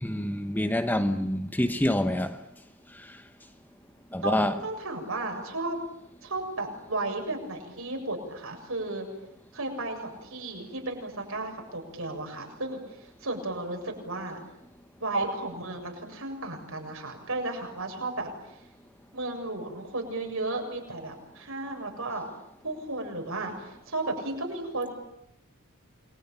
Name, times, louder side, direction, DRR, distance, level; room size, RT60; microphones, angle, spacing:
voice 1, 0.0-2.4 4.1-4.6, left 1 dB, 10° left, 1.1 m, -26 dB
voice 2, 4.2-5.8 6.2-9.1 9.5-14.4 15.0-18.6 19.1-22.3 22.6-24.9, right 2 dB, 65° right, 7.3 m, -34 dB
28.5 x 22.5 x 8.9 m
head